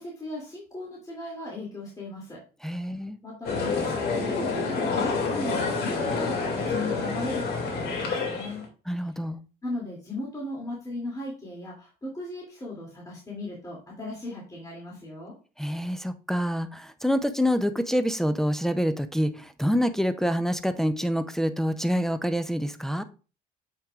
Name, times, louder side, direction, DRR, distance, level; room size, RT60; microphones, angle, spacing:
voice 1, 0.0-2.4 2.8-2.9 3.2-8.7 9.6-15.3, left 2 dB, 20° left, -4 dB, 2.5 m, -37 dB
voice 2, 2.6-3.2 8.9-9.4 15.6-23.0, equal, ahead, 9 dB, 0.5 m, -26 dB
sound 1, 3.4-8.7, left 4 dB, 75° left, 2.2 m, -28 dB
7.3 x 5.9 x 2.4 m, 0.35 s
cardioid pair, 110°, 17 cm